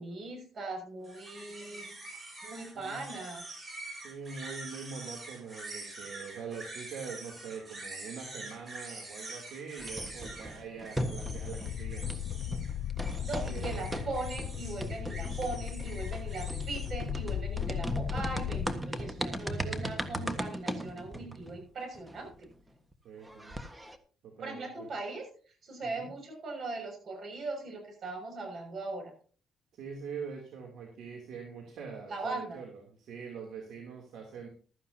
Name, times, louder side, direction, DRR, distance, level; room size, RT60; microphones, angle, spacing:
voice 1, 0.0-2.0 2.4-3.6 13.2-22.5 23.2-23.3 24.4-25.3 25.6-29.1 32.1-32.6, right 3 dB, 55° right, 4 dB, 6.4 m, -39 dB
sound 1, 1.0-16.9, right 2 dB, 35° right, 6.8 m, -46 dB
voice 2, 4.0-12.7 13.5-13.8 17.6-17.9 20.2-20.4 23.0-23.5 24.2-24.9 25.8-26.1 29.7-34.5, right 6 dB, 75° right, 0 dB, 3.1 m, -44 dB
sound 2, 9.8-11.7 12.0-22.5 22.9-23.0 23.2-24.0, right 1 dB, 15° right, 1.5 m, -38 dB
sound 3, 11.1-18.7, left 11 dB, 80° left, 0.5 m, -37 dB
15.5 x 13.0 x 2.9 m, 0.40 s
cardioid pair, 90°, 0 cm